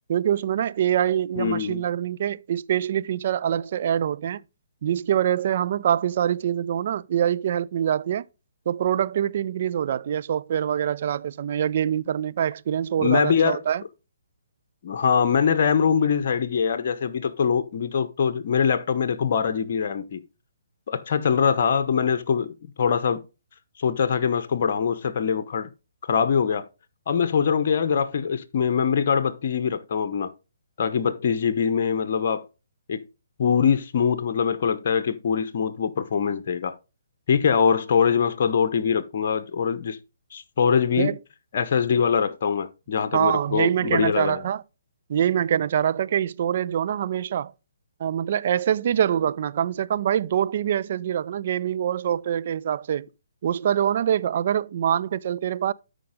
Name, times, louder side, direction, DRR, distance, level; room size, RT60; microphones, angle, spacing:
voice 1, 0.1-4.4 4.8-8.3 8.7-13.8 41.0-41.2 43.1-44.6 45.1-47.5 48.0-53.1 53.4-55.7, right 10 dB, 45° right, 0.4 m, -24 dB
voice 2, 1.4-1.8 13.0-13.6 14.8-20.2 20.9-23.2 23.8-25.7 26.1-26.7 27.1-30.3 30.8-32.4 32.9-33.0 33.4-36.8 37.3-40.0 40.3-41.1 41.5-44.4, left 6 dB, 45° left, 0.8 m, -23 dB
12.5 x 5.2 x 3.7 m
figure-of-eight pair, 135°, 0 cm